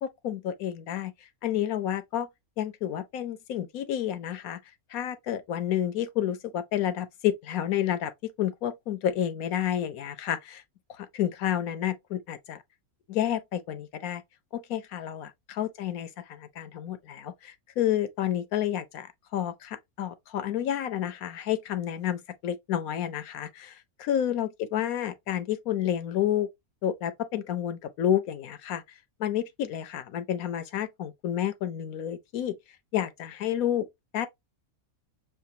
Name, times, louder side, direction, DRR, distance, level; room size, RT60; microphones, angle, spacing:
voice 1, 0.0-1.1 1.4-2.3 2.6-4.6 4.9-10.6 10.9-12.6 13.1-14.2 14.5-26.5 26.8-28.8 29.2-32.6 32.9-33.9 34.1-34.3, left 10 dB, 75° left, 1.1 m, -30 dB
6.6 x 2.3 x 2.6 m
omnidirectional pair, 1.5 m